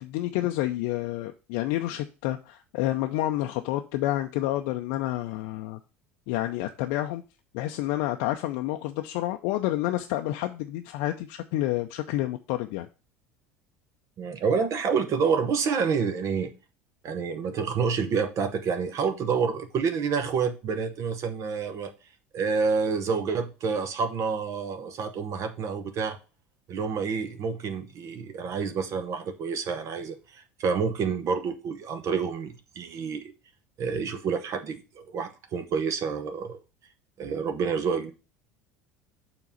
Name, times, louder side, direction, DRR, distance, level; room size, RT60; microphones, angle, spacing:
voice 1, 0.0-5.8 6.3-7.2 7.5-12.9, left 15 dB, 60° left, 0.5 m, -29 dB
voice 2, 14.2-16.5 17.0-21.9 22.3-26.2 26.7-33.2 33.8-36.6 37.2-38.1, right 5 dB, 45° right, 0.9 m, -28 dB
7.0 x 3.9 x 5.7 m
figure-of-eight pair, 70°, 7 cm